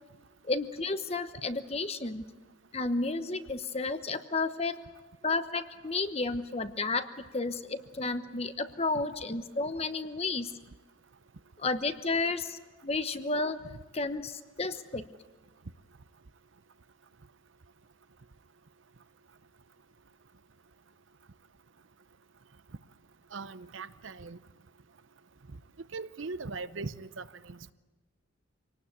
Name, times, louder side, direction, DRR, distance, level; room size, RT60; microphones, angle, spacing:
voice 1, 0.4-2.2 2.7-4.8 5.2-7.1 7.3-10.5 11.6-13.6 13.9-15.1, left 3 dB, 30° left, 10 dB, 1.0 m, -32 dB
voice 2, 23.3-24.4 25.9-27.7, right 3 dB, 75° right, 14 dB, 0.8 m, -40 dB
26.0 x 19.0 x 8.4 m, 1.2 s
head